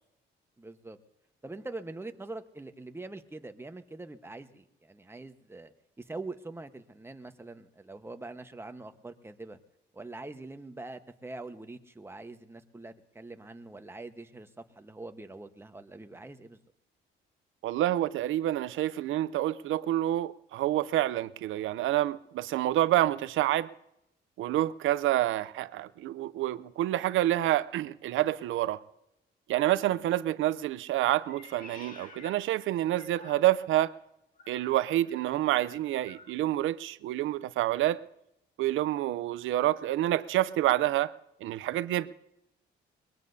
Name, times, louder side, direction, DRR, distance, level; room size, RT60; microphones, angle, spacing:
voice 1, 0.6-1.0 1.4-9.6 9.9-16.6, right 2 dB, 10° right, 1.2 m, -44 dB
voice 2, 17.6-23.7 24.4-28.8 29.5-33.9 34.5-38.0 38.6-41.1 41.4-42.1, right 14 dB, 80° right, 0.6 m, -28 dB
Meow, 31.2-33.8 34.3-36.4, left 3 dB, 45° left, 2.0 m, -52 dB
22.5 x 20.5 x 2.7 m
cardioid pair, 90°, 20 cm